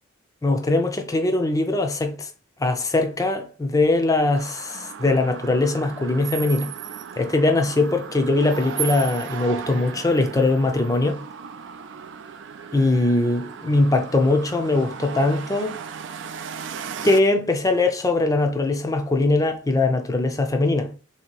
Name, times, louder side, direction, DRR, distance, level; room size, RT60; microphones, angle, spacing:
voice 1, 0.4-2.3 2.6-6.7 7.2-11.2 12.7-15.8 17.0-20.9, left 2 dB, 15° left, 0.5 m, -21 dB
sound 1, 4.4-17.2, right 7 dB, 60° right, 0.4 m, -36 dB
3.3 x 2.8 x 4.5 m
head